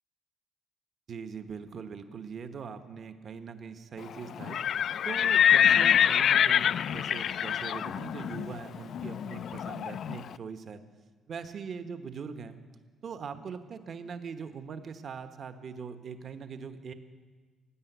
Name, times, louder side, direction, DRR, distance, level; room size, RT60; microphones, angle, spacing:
voice 1, 1.1-4.6 5.0-10.8 11.3-12.6 13.0-16.9, right 6 dB, 55° right, 8 dB, 1.1 m, -41 dB
Livestock farm animals working animals, 4.4-10.2, left 9 dB, 65° left, 0.3 m, -25 dB
17.0 x 9.4 x 8.1 m, 1.5 s
cardioid pair, 90°, 0 cm